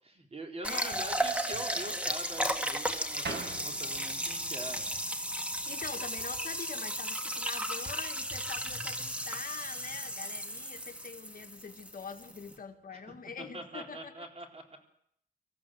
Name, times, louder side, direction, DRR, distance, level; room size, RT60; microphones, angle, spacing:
voice 1, 0.0-4.9 12.9-14.6, right 2 dB, 35° right, 2 dB, 4.1 m, -44 dB
voice 2, 0.6-1.0 5.7-14.3, left 6 dB, 50° left, 6 dB, 1.7 m, -44 dB
sound 1, 0.6-12.6, right 1 dB, 5° right, 1.8 m, -35 dB
sound 2, 3.2-13.4, right 3 dB, 70° right, 6.1 m, -49 dB
25.5 x 14.5 x 7.8 m, 0.72 s
wide cardioid pair, 135°, 18 cm